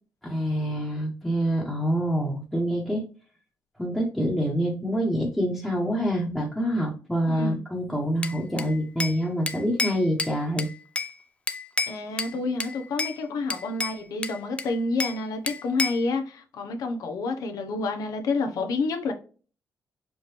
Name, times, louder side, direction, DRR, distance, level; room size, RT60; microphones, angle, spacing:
voice 1, 0.2-3.0 3.8-10.7, equal, 5° left, 1.1 m, -26 dB
Bell / Glass, 8.2-9.2 9.5-11.1 11.5-12.3 12.6-13.2 13.5-15.2 15.5-16.1, left 3 dB, 20° left, 0.4 m, -30 dB
voice 2, 11.9-19.1, left 3 dB, 80° left, 0.9 m, -29 dB
4.9 x 2.5 x 3.2 m
cardioid pair, 90°, 6 cm